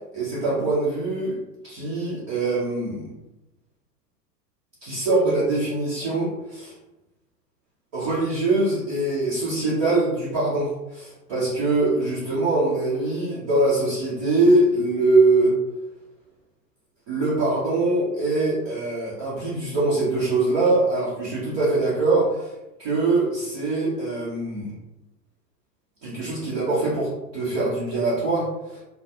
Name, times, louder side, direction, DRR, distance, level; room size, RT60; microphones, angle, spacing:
voice 1, 0.1-1.4 1.6-3.1 4.8-6.7 7.9-15.5 17.1-22.5 22.8-24.7 26.0-28.8, right 2 dB, 20° right, -10 dB, 0.4 m, -23 dB
2.2 x 2.1 x 2.6 m, 0.95 s
figure-of-eight pair, 110°, 49 cm